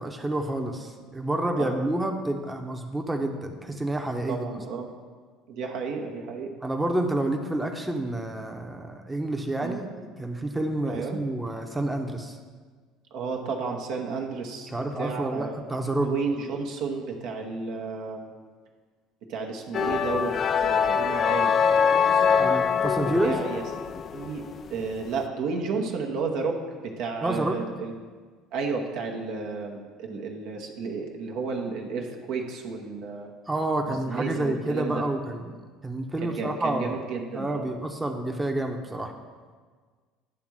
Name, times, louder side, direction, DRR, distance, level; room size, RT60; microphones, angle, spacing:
voice 1, 0.0-4.4 6.6-9.9 10.2-12.4 14.7-16.1 22.4-23.3 27.2-27.6 33.5-35.5 35.8-37.0 37.3-39.1, right 1 dB, 10° right, 3 dB, 0.9 m, -29 dB
voice 2, 4.3-4.9 5.5-6.5 9.6-9.8 10.9-11.2 13.1-15.5 16.0-18.3 19.3-20.4 20.6-21.5 23.2-24.4 24.7-27.9 28.5-33.3 33.9-35.0 36.2-37.7, right 4 dB, 65° right, 2 dB, 0.9 m, -32 dB
sound 1, 19.7-24.9, left 6 dB, 40° left, 0.3 m, -23 dB
9.7 x 3.5 x 6.2 m, 1.5 s
hypercardioid pair, 65°, 0 cm